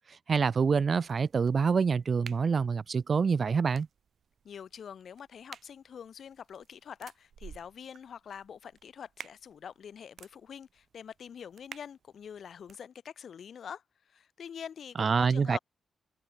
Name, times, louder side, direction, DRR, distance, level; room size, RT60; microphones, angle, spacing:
voice 1, 0.3-3.9 15.0-15.6, right 5 dB, 35° right, 0.4 m, -26 dB
sound 1, 1.1-12.8, right 8 dB, 55° right, 7.4 m, -54 dB
voice 2, 4.4-15.6, left 7 dB, 55° left, 6.3 m, -45 dB
wide cardioid pair, 155°, 0 cm